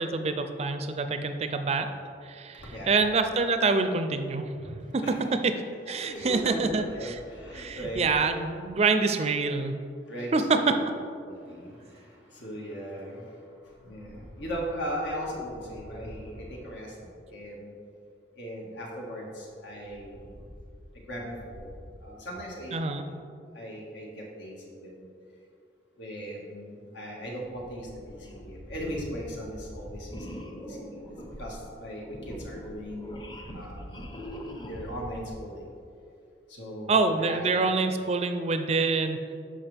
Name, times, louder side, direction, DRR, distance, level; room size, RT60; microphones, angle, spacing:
voice 1, 0.0-1.9 2.2-5.0 5.9-7.1 7.5-9.8 10.3-10.6 10.9-11.0 22.7-23.0 36.9-39.3, right 3 dB, 35° right, 8 dB, 0.4 m, -26 dB
voice 2, 2.5-2.9 5.0-5.2 5.7-8.1 10.1-10.8 11.2-13.5 13.8-17.0 17.3-17.7 18.3-20.3 20.9-22.9 23.5-25.1 26.0-34.1 34.6-35.6 36.5-37.8, equal, 80° left, -2 dB, 1.9 m, -38 dB
sound 1, 28.1-28.4 28.7-29.3 30.1-35.1, equal, 25° left, 0.7 m, -42 dB
13.0 x 4.9 x 3.5 m, 2.4 s
head